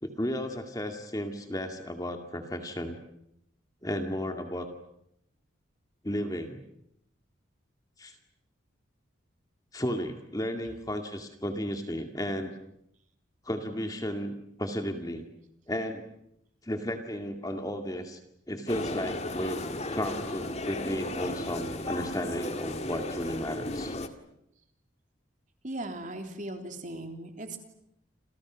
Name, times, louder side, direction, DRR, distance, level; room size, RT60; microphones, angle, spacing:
voice 1, 0.0-3.0 3.8-4.7 6.0-6.6 8.0-8.1 9.7-12.5 13.5-14.3 14.6-15.2 15.7-16.0 16.6-18.2 18.5-19.7 19.9-23.9, equal, 20° left, 5 dB, 2.2 m, -33 dB
sound 1, 18.7-24.1, left 2 dB, 35° left, 1.8 m, -35 dB
voice 2, 25.6-27.6, right 1 dB, 40° right, 5 dB, 3.4 m, -38 dB
29.5 x 28.0 x 6.3 m, 0.77 s
head